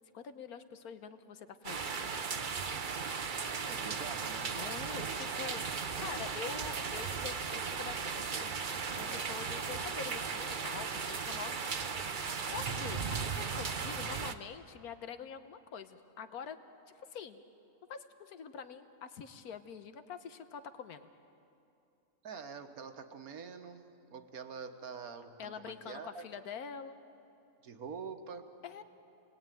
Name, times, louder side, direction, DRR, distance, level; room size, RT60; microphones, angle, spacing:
voice 1, 0.1-2.1 4.6-8.6 8.9-11.6 12.2-16.6 17.1-17.4 17.9-21.1 25.4-27.0 28.6-28.8, left 7 dB, 85° left, 10 dB, 1.6 m, -45 dB
sound 1, 1.6-14.3, right 5 dB, 40° right, 0.9 m, -36 dB
voice 2, 3.7-4.6 22.2-26.2 27.6-28.5, right 5 dB, 75° right, 7 dB, 1.8 m, -45 dB
29.5 x 20.0 x 9.2 m, 2.7 s
omnidirectional pair, 1.5 m